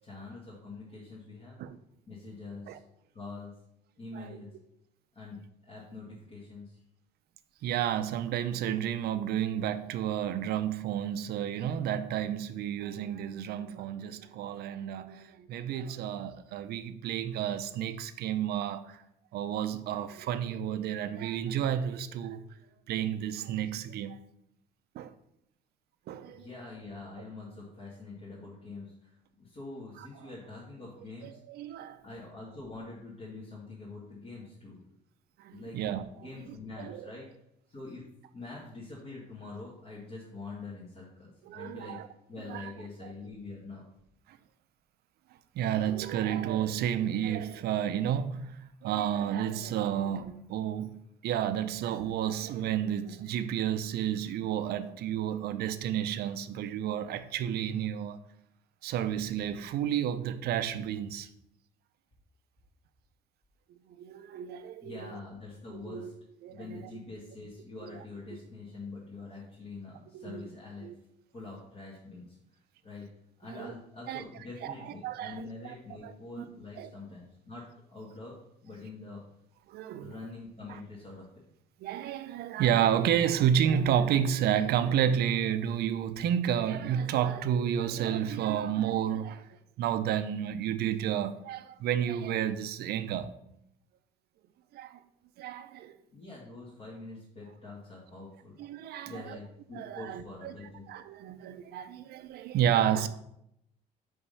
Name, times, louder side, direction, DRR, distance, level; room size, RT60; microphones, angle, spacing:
voice 1, 0.0-1.6 2.1-2.8 3.1-3.5 4.0-4.5 5.1-5.4 5.6-6.8 7.6-7.7 26.2-31.4 32.0-34.8 35.5-35.8 36.2-37.3 37.7-38.0 38.3-42.0 42.3-43.9 64.8-66.1 66.5-70.9 71.3-72.4 72.8-73.1 73.4-78.4 78.6-79.2 80.0-81.4 96.1-98.6 99.0-100.9, left 3 dB, 40° left, 2.2 m, -45 dB
voice 2, 7.6-19.0 19.3-22.4 22.9-24.2 24.9-25.1 26.1-26.5 31.2-32.0 35.4-36.1 36.8-37.1 41.5-42.0 42.5-42.7 44.3-44.4 45.5-58.2 58.8-61.3 63.9-65.1 65.7-66.1 66.4-66.9 67.8-68.0 70.1-70.4 70.8-71.0 73.5-73.7 74.1-74.2 74.6-75.7 76.0-76.5 76.8-76.9 79.7-80.1 81.8-93.3 94.7-95.0 95.4-96.0 98.6-99.4 99.7-100.5 100.9-103.1, right 9 dB, 70° right, 0.6 m, -31 dB
5.6 x 5.5 x 5.5 m
cardioid pair, 110°, 17 cm